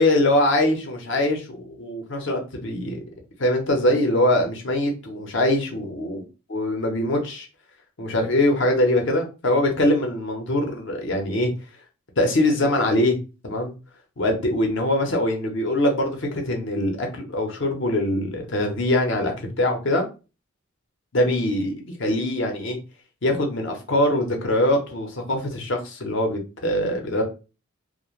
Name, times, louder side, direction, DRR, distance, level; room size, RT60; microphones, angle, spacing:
voice 1, 0.0-3.0 3.4-6.2 6.5-7.4 8.0-11.5 12.2-13.2 13.4-13.7 14.2-20.1 21.1-22.8 23.2-27.2, left 1 dB, 60° left, 3 dB, 0.7 m, -23 dB
2.4 x 2.1 x 3.0 m, 0.31 s
head